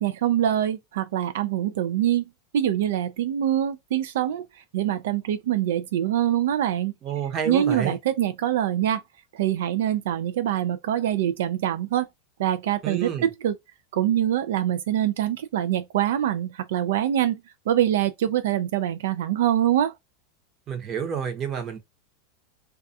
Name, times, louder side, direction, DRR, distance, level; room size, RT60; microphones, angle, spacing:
voice 1, 0.0-2.2 2.5-4.4 4.7-6.9 7.5-9.0 9.3-12.1 12.4-13.1 13.4-13.5 13.9-17.4 17.7-19.9, right 11 dB, 80° right, 0.3 m, -24 dB
voice 2, 7.0-7.9 12.8-13.3 20.7-21.8, right 8 dB, 30° right, 0.8 m, -29 dB
2.3 x 2.3 x 2.6 m
supercardioid pair, 150°, 0 cm